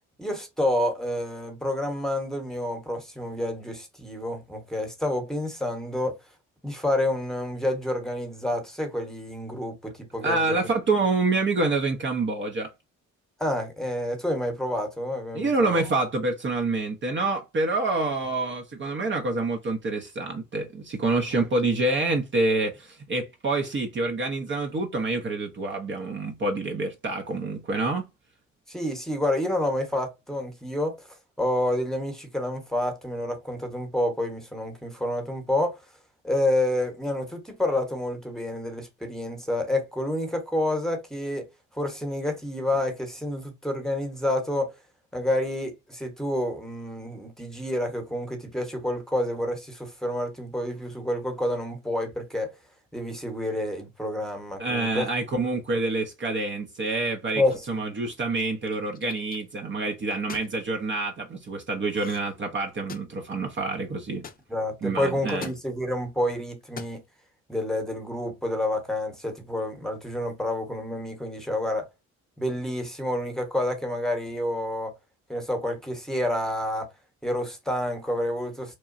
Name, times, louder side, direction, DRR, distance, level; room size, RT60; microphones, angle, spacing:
voice 1, 0.2-6.2 6.6-10.7 13.4-15.8 21.3-21.4 28.7-30.9 31.4-35.7 36.2-41.5 41.7-44.7 45.1-52.5 52.9-55.1 57.3-57.6 64.5-67.0 67.5-71.9 72.4-74.9 75.3-76.9 77.2-78.8, left 1 dB, ahead, 1.0 m, -28 dB
voice 2, 10.2-12.7 15.3-28.1 54.6-64.2 64.8-65.5, right 3 dB, 40° right, 0.7 m, -27 dB
sound 1, 57.5-57.9 58.7-59.4 60.1-60.5 61.9-62.4 62.6-63.3 64.2-64.4 65.3-65.6 66.6-67.0, left 6 dB, 30° left, 0.5 m, -41 dB
2.9 x 2.2 x 2.4 m
cardioid pair, 90°, 30 cm